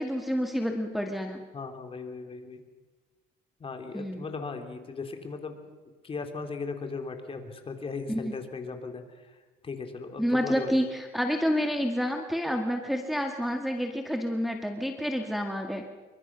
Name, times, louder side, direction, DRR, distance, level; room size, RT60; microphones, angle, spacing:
voice 1, 0.0-1.4 3.9-4.2 8.1-8.3 10.2-15.8, equal, ahead, 2 dB, 2.0 m, -29 dB
voice 2, 1.5-2.6 3.6-5.6 5.9-10.8, left 4 dB, 35° left, 5 dB, 3.5 m, -38 dB
27.0 x 23.5 x 6.3 m, 1.2 s
cardioid pair, 110°, 17 cm